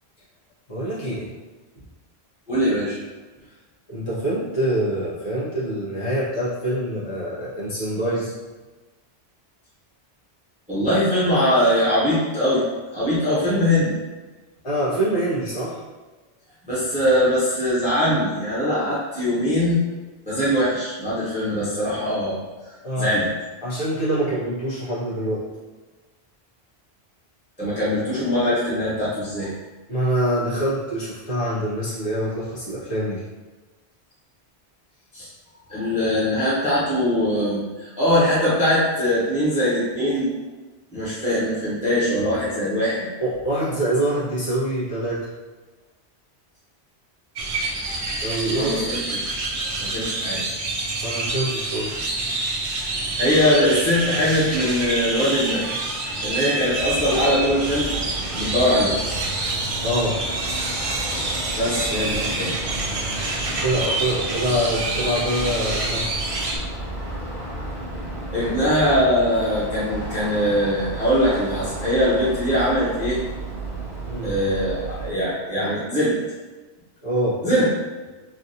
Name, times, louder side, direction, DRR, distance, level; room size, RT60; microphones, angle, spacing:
voice 1, 0.7-1.3 1.7-1.8 3.9-8.3 14.6-15.8 22.8-23.1 23.6-25.4 29.9-33.2 43.2-45.3 48.2-48.9 51.0-52.0 59.8-60.2 63.6-66.1 68.3-68.6 74.0-74.3 77.0-77.4, right 1 dB, 85° left, -10 dB, 1.6 m, -25 dB
voice 2, 2.5-3.0 10.7-12.6 12.9-13.9 16.6-19.8 20.2-22.4 22.6-23.2 27.6-29.5 35.1-35.3 35.7-40.3 40.9-43.1 48.5-49.4 49.8-50.4 52.7-52.9 53.2-55.6 56.2-57.9 58.3-58.9 61.1-62.5 68.3-73.2 74.2-76.1 77.4-77.7, equal, 10° right, -10 dB, 0.9 m, -22 dB
sound 1, 47.3-66.6, right 2 dB, 50° right, 0.4 m, -27 dB
sound 2, 56.8-75.1, right 2 dB, 65° left, 1.9 m, -33 dB
3.3 x 2.5 x 2.7 m, 1.2 s
omnidirectional pair, 1.1 m